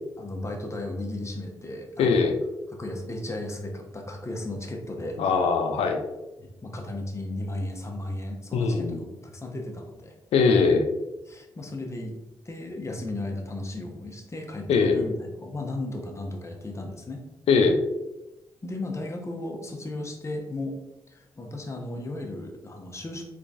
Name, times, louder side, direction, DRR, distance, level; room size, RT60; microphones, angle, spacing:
voice 1, 0.2-2.3 2.8-5.2 6.4-10.1 11.3-12.1 12.4-17.2 18.6-20.8 21.1-23.2, left 1 dB, 25° left, 2 dB, 0.9 m, -35 dB
voice 2, 2.0-2.4 5.2-6.0 8.5-9.0 10.3-10.9 14.7-15.0 17.5-17.8, left 4 dB, 75° left, 5 dB, 0.5 m, -21 dB
3.7 x 3.4 x 2.5 m, 0.95 s
supercardioid pair, 50°, 10 cm